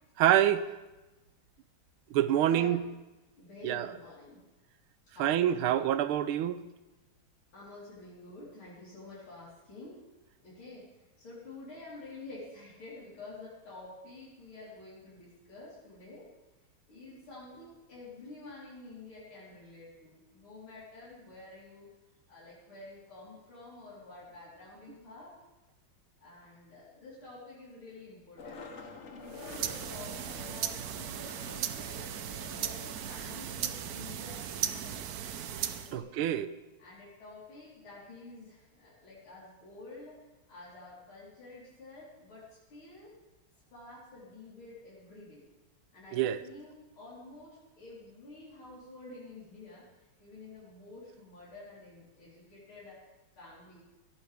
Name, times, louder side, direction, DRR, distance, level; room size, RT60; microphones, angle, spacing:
voice 1, 0.2-0.7 2.1-2.8 3.6-3.9 5.2-6.6 35.9-36.5 46.1-46.4, right 11 dB, 85° right, 13 dB, 1.5 m, -26 dB
voice 2, 2.4-2.8 3.4-4.4 5.1-5.5 7.5-10.0 10.4-16.3 16.9-21.9 22.3-25.3 26.2-32.1 32.5-35.1 35.8-36.1 36.8-40.2 40.5-43.1 43.7-45.5 45.9-49.9 50.2-53.0 53.4-53.8, left 2 dB, 80° left, -9 dB, 4.9 m, -49 dB
Skateboard, 28.4-34.0, left 4 dB, 40° left, 1.3 m, -49 dB
sound 1, 29.3-36.0, right 9 dB, 65° right, 1.0 m, -37 dB
17.5 x 14.0 x 3.5 m, 1.1 s
omnidirectional pair, 2.3 m